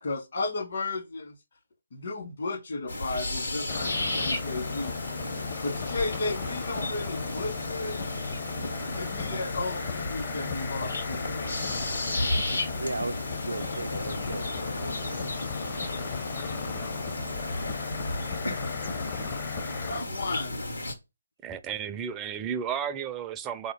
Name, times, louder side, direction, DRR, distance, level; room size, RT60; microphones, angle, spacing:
voice 1, 0.0-1.3 1.9-4.9 5.6-8.0 8.9-11.9 19.9-20.6, left 3 dB, 55° left, 1.5 m, -34 dB
sound 1, 2.9-20.9, left 1 dB, 80° left, 1.3 m, -34 dB
sound 2, 3.7-20.0, left 6 dB, 30° left, 0.6 m, -37 dB
voice 2, 12.5-15.3 16.9-17.0, right 2 dB, 80° right, 0.4 m, -37 dB
voice 3, 21.4-23.7, right 8 dB, 15° right, 0.4 m, -33 dB
3.9 x 2.8 x 4.8 m
figure-of-eight pair, 150°, 0 cm